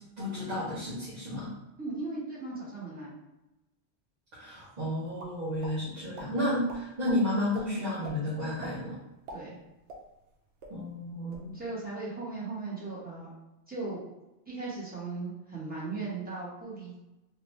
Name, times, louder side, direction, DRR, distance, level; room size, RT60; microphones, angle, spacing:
voice 1, 0.2-1.5 4.3-9.0 10.7-11.5, left 1 dB, 45° right, -9 dB, 0.9 m, -32 dB
voice 2, 1.8-3.1 9.3-9.6 11.5-13.3 13.7-14.0 14.4-17.0, right 3 dB, 10° right, -9 dB, 1.1 m, -37 dB
sound 1, 5.2-5.7 6.1-6.3 6.7-7.2 7.5-7.6 8.0-8.2 8.6-8.8 9.1-10.3 10.6-10.7 11.1-11.5, right 1 dB, 85° right, 1.0 m, -44 dB
3.0 x 2.5 x 3.2 m, 0.95 s
omnidirectional pair, 1.1 m